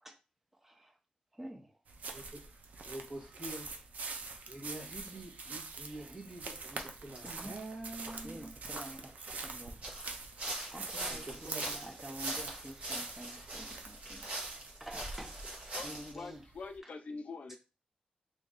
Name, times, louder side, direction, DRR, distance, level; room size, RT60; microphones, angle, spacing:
voice 1, 0.6-0.9 1.3-1.7 6.0-6.1 7.2-7.5 8.2-9.8 10.7-14.3 14.8-15.4 15.8-16.4 16.8-16.9 17.5-17.6, equal, 10° right, 0.7 m, -48 dB
sound 1, 1.9-16.7, right 4 dB, 75° right, 0.5 m, -46 dB
voice 2, 2.1-2.4 2.8-3.7 4.5-8.5 11.1-11.8, right 2 dB, 40° right, 1.5 m, -46 dB
sound 2, 6.8-6.9 7.1-7.4 7.7-9.5 9.8-16.1, right 1 dB, 60° right, 1.2 m, -42 dB
voice 3, 16.1-17.6, left 4 dB, 60° left, 0.5 m, -44 dB
3.0 x 2.7 x 3.7 m
wide cardioid pair, 125°, 3 cm